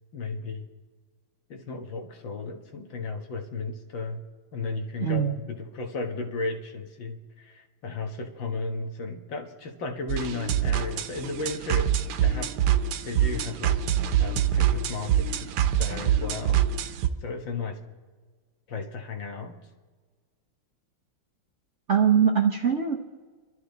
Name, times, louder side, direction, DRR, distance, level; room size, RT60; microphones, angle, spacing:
voice 1, 0.1-0.7 1.5-4.2 4.5-11.9 12.2-12.5 13.0-15.5 15.8-16.6 17.2-17.8 18.7-19.6, left 3 dB, 60° left, 4 dB, 2.1 m, -34 dB
voice 2, 5.0-5.4 21.9-23.0, right 8 dB, 50° right, 3 dB, 0.9 m, -22 dB
sound 1, 10.1-17.1, right 9 dB, 85° right, 1.7 m, -25 dB
27.5 x 12.5 x 4.0 m, 1.4 s
omnidirectional pair, 2.4 m